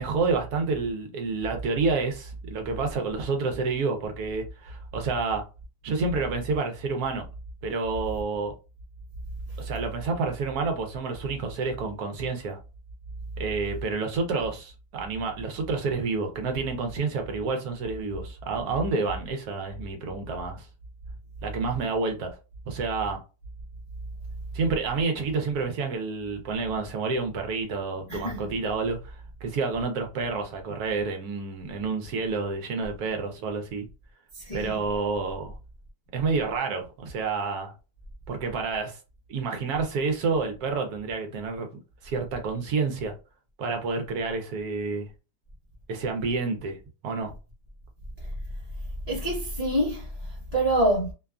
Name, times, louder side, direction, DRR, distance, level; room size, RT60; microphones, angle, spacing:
voice 1, 0.0-5.4 5.8-7.3 7.6-8.5 9.6-12.6 13.4-20.7 21.4-22.4 22.7-23.2 24.5-33.9 34.5-35.5 36.1-37.7 38.3-39.0 39.3-41.7 42.0-43.1 43.6-45.1 45.9-46.8 47.0-47.3, right 4 dB, 70° right, 1.1 m, -29 dB
voice 2, 28.1-28.5 34.3-34.8 48.2-48.3 49.1-51.1, right 1 dB, 50° left, 0.5 m, -27 dB
2.8 x 2.3 x 2.3 m
omnidirectional pair, 1.7 m